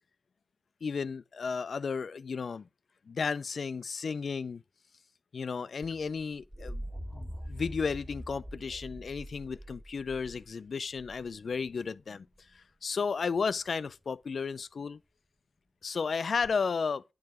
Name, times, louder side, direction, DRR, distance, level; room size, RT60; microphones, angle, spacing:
voice 1, 0.8-2.7 3.1-4.6 5.3-6.8 7.1-12.3 12.5-15.0 15.8-17.0, left 5 dB, 70° left, 0.4 m, -33 dB
sound 1, 5.8-11.7 13.4-13.9 16.4-16.5, equal, 15° right, 1.7 m, -44 dB
9.5 x 4.6 x 2.9 m
cardioid pair, 40°, 0 cm